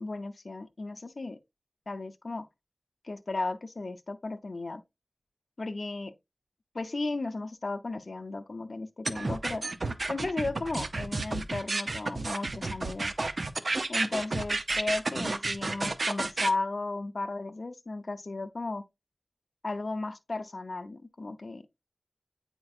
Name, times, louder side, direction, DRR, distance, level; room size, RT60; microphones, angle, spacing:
voice 1, 0.0-1.4 1.9-2.5 3.0-4.8 5.6-6.1 6.7-9.6 10.1-13.1 13.9-18.8 19.6-21.7, left 3 dB, 65° left, 0.5 m, -35 dB
sound 1, 9.0-16.5, right 3 dB, 65° right, 0.6 m, -31 dB
8.6 x 4.4 x 2.4 m
wide cardioid pair, 70°, 0 cm